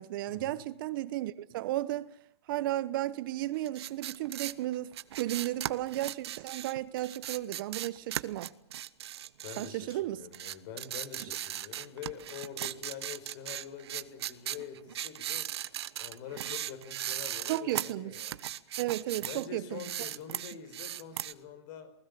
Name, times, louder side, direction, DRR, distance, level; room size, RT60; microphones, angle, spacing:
voice 1, 0.0-2.1 2.5-8.5 9.6-10.2 17.5-18.1 18.8-19.8, right 15 dB, 50° right, 1.1 m, -34 dB
sound 1, 3.6-10.0 10.3-19.5 19.7-21.3, right 12 dB, 70° right, 1.2 m, -38 dB
voice 2, 9.4-15.5 16.0-18.4 19.2-21.9, left 8 dB, 45° left, 5.4 m, -45 dB
28.5 x 20.0 x 7.0 m
hypercardioid pair, 145°, 14 cm